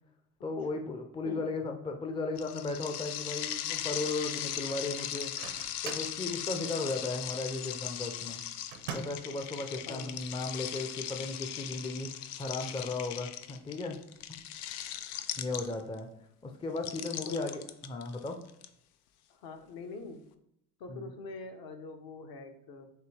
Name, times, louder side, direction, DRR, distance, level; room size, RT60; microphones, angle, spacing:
voice 1, 0.4-5.3 5.8-8.4 8.9-12.1 12.4-14.0 15.3-16.1 16.4-18.4 20.9-21.1, left 3 dB, 10° left, 5 dB, 0.5 m, -36 dB
sound 1, 2.4-16.0 16.8-18.7, left 11 dB, 85° left, 0.5 m, -39 dB
Microwave oven, 5.1-6.2 8.7-9.3, right 6 dB, 75° right, 0.8 m, -42 dB
voice 2, 9.8-10.2 17.3-17.6 19.3-20.2 20.8-22.9, left 3 dB, 55° left, 5 dB, 0.9 m, -44 dB
6.6 x 2.2 x 3.2 m, 0.76 s
hypercardioid pair, 75°, 44 cm